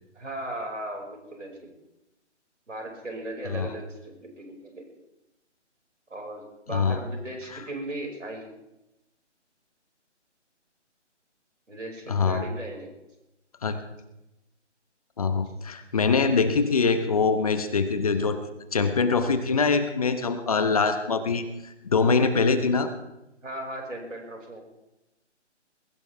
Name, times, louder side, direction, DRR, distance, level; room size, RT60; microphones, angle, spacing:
voice 1, 0.1-1.7 2.7-4.9 6.1-8.5 11.7-12.9 15.3-15.4 23.4-24.6, right 1 dB, 90° right, 1 dB, 5.9 m, -37 dB
voice 2, 3.4-3.8 6.7-7.0 12.1-12.4 13.6-13.8 15.2-18.4 18.7-22.9, left 4 dB, 30° left, 9 dB, 1.0 m, -24 dB
22.0 x 16.0 x 3.5 m, 0.92 s
figure-of-eight pair, 160°, 36 cm